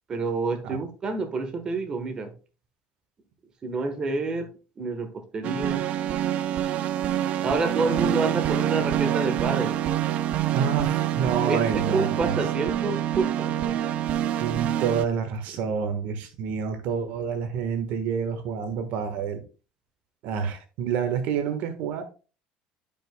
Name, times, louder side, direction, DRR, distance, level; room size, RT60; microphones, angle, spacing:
voice 1, 0.1-2.3 3.6-4.5 4.8-5.8 7.4-9.7 11.5-11.6 11.9-13.7, right 3 dB, 30° right, 1.2 m, -28 dB
sound 1, 5.4-15.0, right 11 dB, 50° right, 0.4 m, -26 dB
voice 2, 10.5-12.4 14.4-19.4 20.2-22.0, right 7 dB, 70° right, 1.4 m, -28 dB
11.5 x 5.3 x 2.2 m
cardioid pair, 120°, 3 cm